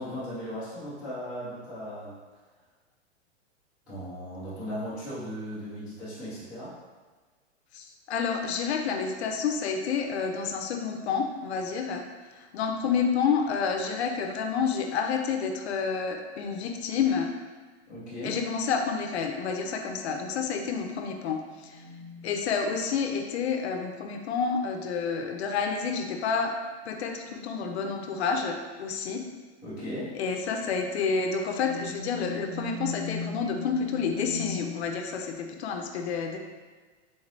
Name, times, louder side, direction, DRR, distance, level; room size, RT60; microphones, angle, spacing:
voice 1, 0.0-2.1 3.9-6.8 17.9-18.4 29.6-30.1, equal, 5° right, -17 dB, 0.3 m, -37 dB
voice 2, 7.7-12.1 12.4-17.3 18.2-21.8 22.2-26.6 26.9-29.2 30.1-36.4, left 5 dB, 65° left, 4 dB, 0.5 m, -29 dB
sound 1, 21.6-23.3 25.7-25.8 26.5-26.6 27.4-28.5 29.4-29.8 30.5-34.8, left 2 dB, 60° right, 1.1 m, -41 dB
3.8 x 3.1 x 2.6 m, 1.4 s
supercardioid pair, 160°, 35 cm